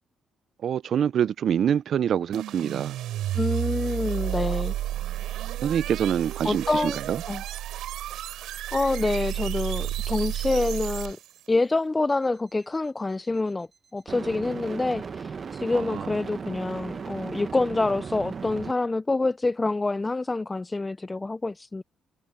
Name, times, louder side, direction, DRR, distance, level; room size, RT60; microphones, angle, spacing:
voice 1, 0.6-3.0 5.6-7.2 15.7-16.1, right 9 dB, 60° right, 0.4 m, -25 dB
sound 1, 2.3-11.4, right 13 dB, 85° right, 7.3 m, -31 dB
voice 2, 3.3-4.7 6.4-7.0 7.3-7.4 8.7-11.2 11.5-13.7 13.9-21.8, left 2 dB, 20° left, 0.5 m, -26 dB
sound 2, 9.3-9.4 14.1-18.7, right 5 dB, 40° right, 1.3 m, -36 dB
cardioid pair, 90°, 0 cm